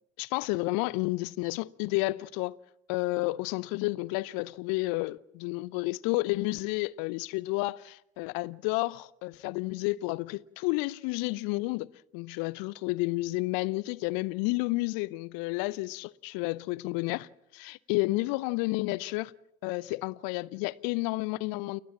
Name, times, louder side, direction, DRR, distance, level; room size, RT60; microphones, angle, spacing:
voice 1, 0.2-2.6 2.9-19.3 19.6-21.8, left 22 dB, 60° left, 0.7 m, -31 dB
29.5 x 15.0 x 7.3 m
figure-of-eight pair, 50°, 40 cm